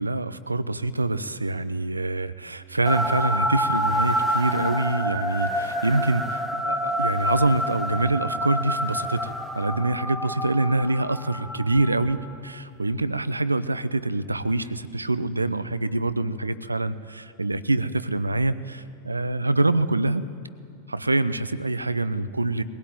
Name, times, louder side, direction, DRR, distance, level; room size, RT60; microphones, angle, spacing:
voice 1, 0.0-20.2 20.9-22.6, right 2 dB, 80° right, 15 dB, 0.7 m, -25 dB
sound 1, 2.9-12.3, equal, ahead, 2.3 m, -28 dB
21.5 x 17.0 x 9.2 m, 2.4 s
figure-of-eight pair, 90°, 0 cm